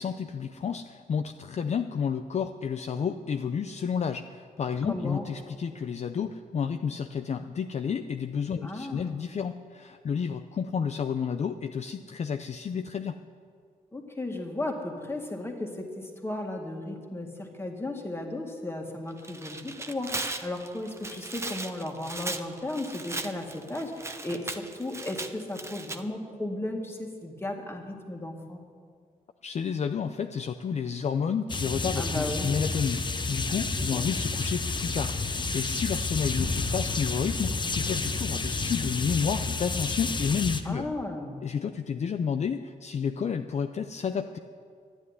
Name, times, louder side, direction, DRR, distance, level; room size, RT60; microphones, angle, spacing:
voice 1, 0.0-13.2 29.4-40.9 41.4-44.4, left 6 dB, 50° left, 7 dB, 0.5 m, -31 dB
voice 2, 4.8-5.3 8.6-9.1 13.9-28.6 32.0-32.5 33.8-34.0 40.6-41.4, left 1 dB, 15° left, 2 dB, 2.0 m, -35 dB
Tearing, 19.1-26.0, right 2 dB, 20° right, 0.8 m, -37 dB
sound 1, 31.5-40.6, left 3 dB, 30° left, 0.9 m, -30 dB
11.5 x 9.9 x 9.7 m, 2.1 s
cardioid pair, 100°, 15 cm